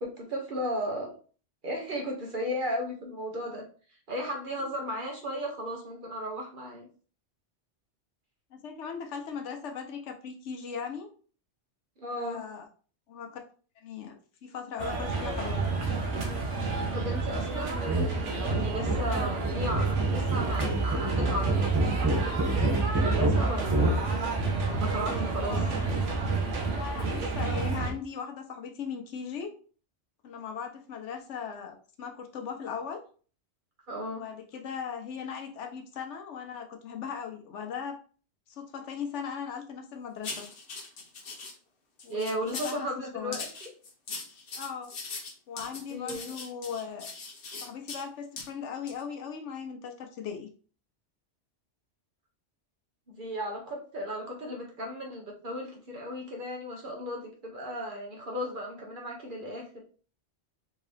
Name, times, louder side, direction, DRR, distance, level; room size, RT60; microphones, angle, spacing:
voice 1, 0.0-1.1 1.6-3.6 4.1-6.9 12.0-12.4 16.9-24.2 24.7-25.6 33.9-34.2 42.1-43.7 45.9-46.3 53.1-59.8, equal, 50° right, 1 dB, 0.9 m, -35 dB
voice 2, 8.5-11.1 12.2-12.7 13.1-13.4 13.8-15.6 25.5-25.8 26.8-29.5 30.2-33.0 34.1-38.0 38.5-40.5 42.0-42.9 43.1-43.4 44.5-44.9 45.5-47.1 47.6-50.5, left 6 dB, 80° left, 5 dB, 1.0 m, -38 dB
sound 1, 14.8-27.9, right 3 dB, 80° right, 1.2 m, -30 dB
sound 2, 17.9-18.1 18.4-24.0, right 2 dB, 20° right, 0.5 m, -28 dB
sound 3, 40.2-41.5 42.0-42.8 43.3-48.0 48.4-48.5 48.9-49.0, left 4 dB, 55° left, 1.0 m, -40 dB
3.7 x 2.7 x 3.2 m, 0.40 s
omnidirectional pair, 1.2 m